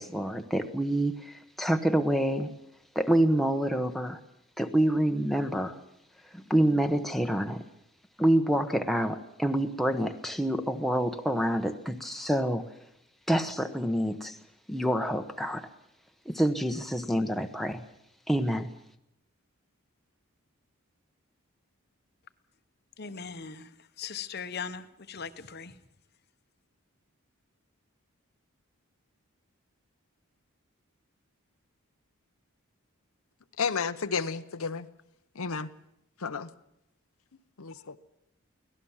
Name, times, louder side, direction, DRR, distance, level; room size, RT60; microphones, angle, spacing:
voice 1, 0.0-2.5 2.9-4.2 4.6-5.8 6.3-7.6 8.2-12.6 13.3-14.4 14.7-15.7 16.2-17.8 18.3-18.7, right 1 dB, ahead, 1.0 m, -27 dB
voice 2, 23.0-23.7 24.0-25.8, left 6 dB, 45° left, 1.0 m, -39 dB
voice 3, 33.6-34.9 35.4-35.7 36.2-36.5 37.6-38.0, left 5 dB, 75° left, 0.9 m, -32 dB
24.0 x 17.5 x 7.3 m
head